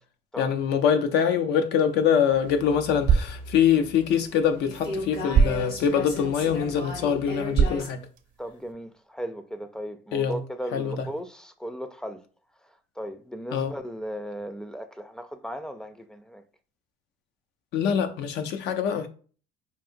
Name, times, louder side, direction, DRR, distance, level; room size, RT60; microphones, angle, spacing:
voice 1, 0.4-8.0 10.1-10.4 10.7-11.1 13.5-13.7 17.7-19.1, left 8 dB, 85° left, 0.5 m, -24 dB
sound 1, 1.8-8.7, right 6 dB, 55° right, 0.5 m, -29 dB
sound 2, 2.2-7.9, left 1 dB, 70° left, 1.4 m, -37 dB
voice 2, 8.4-12.2 12.6-16.4, equal, 5° left, 0.3 m, -37 dB
4.7 x 2.7 x 2.6 m
cardioid pair, 110°, 17 cm